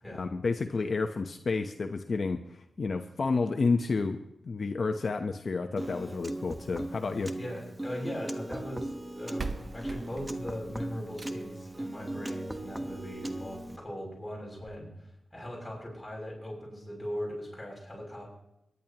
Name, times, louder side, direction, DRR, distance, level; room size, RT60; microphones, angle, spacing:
voice 1, 0.2-2.4 2.8-7.3, left 4 dB, 55° left, 6 dB, 0.8 m, -30 dB
Piano, 5.8-13.8, right 1 dB, 15° right, 1.1 m, -38 dB
sound 1, 7.0-8.2 9.0-9.1 9.4-11.7 13.0-13.1 13.6-13.7 13.9-14.0 14.6-14.7, right 4 dB, 50° right, 1.2 m, -42 dB
voice 2, 7.3-18.3, equal, 10° left, -3 dB, 6.4 m, -40 dB
23.0 x 11.0 x 3.0 m, 0.86 s
wide cardioid pair, 85°, 0 cm